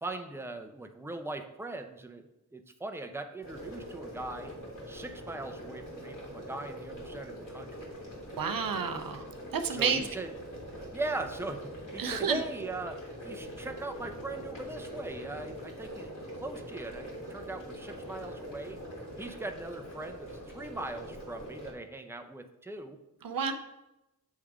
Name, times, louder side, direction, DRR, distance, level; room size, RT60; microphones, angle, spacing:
voice 1, 0.0-2.3 2.5-4.5 4.9-7.9 9.7-10.3 10.8-18.8 19.2-20.3 20.5-23.0, right 2 dB, 5° right, 6 dB, 0.7 m, -40 dB
sound 1, 3.4-21.7, equal, 65° left, 2.3 m, -43 dB
voice 2, 8.4-9.3 9.5-10.1 12.0-12.4 23.2-23.5, right 6 dB, 75° right, 8 dB, 0.6 m, -30 dB
7.4 x 3.5 x 4.8 m, 0.92 s
cardioid pair, 45°, 34 cm